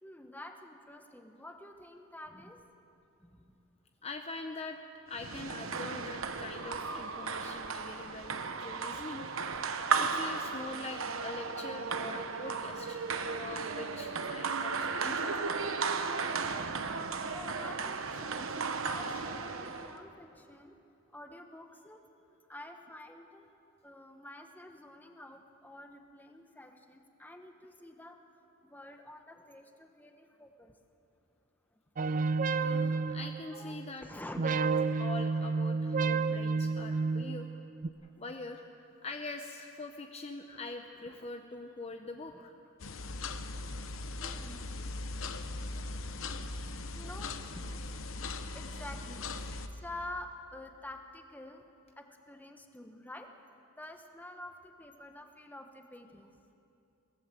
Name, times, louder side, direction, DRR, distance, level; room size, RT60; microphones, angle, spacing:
voice 1, 0.0-2.6 3.2-3.6 8.9-9.0 9.7-10.0 17.3-20.8 21.1-22.0 22.5-23.4 23.8-28.2 28.6-30.7 32.0-32.1 32.8-32.9 33.5-34.4 41.1-41.2 42.3-42.4 44.1-44.7 45.6-47.8 48.5-53.3 53.8-56.4, left 1 dB, 10° left, 5 dB, 1.1 m, -49 dB
voice 2, 4.0-4.8 5.1-9.3 10.0-15.4 32.4-34.1 34.4-34.5 35.0-37.5 38.2-38.6 39.0-42.5 49.4-49.7, left 3 dB, 30° left, 5 dB, 0.7 m, -44 dB
sound 1, 5.1-20.0, right 5 dB, 65° right, 1.0 m, -35 dB
sound 2, 32.0-33.9 34.4-37.9, right 4 dB, 40° right, 0.4 m, -31 dB
sound 3, 42.8-49.7, left 2 dB, 65° left, 0.9 m, -39 dB
22.0 x 17.5 x 7.6 m, 2.8 s
head